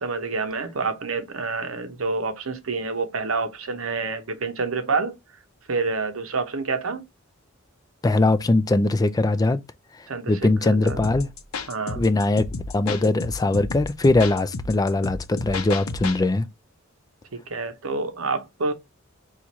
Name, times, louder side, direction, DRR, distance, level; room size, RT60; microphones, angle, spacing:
voice 1, 0.0-5.1 5.7-7.0 10.1-11.0 11.7-12.0 17.3-18.7, right 4 dB, 70° right, 0.7 m, -28 dB
voice 2, 8.0-9.6 10.3-11.3 12.0-12.5 12.7-16.4, left 2 dB, 20° left, 0.3 m, -21 dB
sound 1, 10.9-16.2, left 3 dB, 80° left, 0.7 m, -33 dB
4.4 x 2.4 x 4.0 m
head